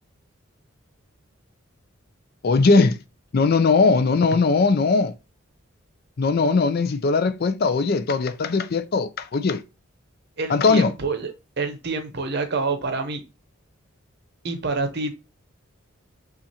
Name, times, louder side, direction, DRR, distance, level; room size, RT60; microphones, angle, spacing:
voice 1, 2.4-3.0 3.3-5.1 6.2-9.6 10.5-10.9, left 4 dB, 50° left, 0.4 m, -19 dB
voice 2, 10.4-13.2 14.4-15.1, right 3 dB, 55° right, 0.7 m, -27 dB
5.7 x 2.5 x 2.8 m
head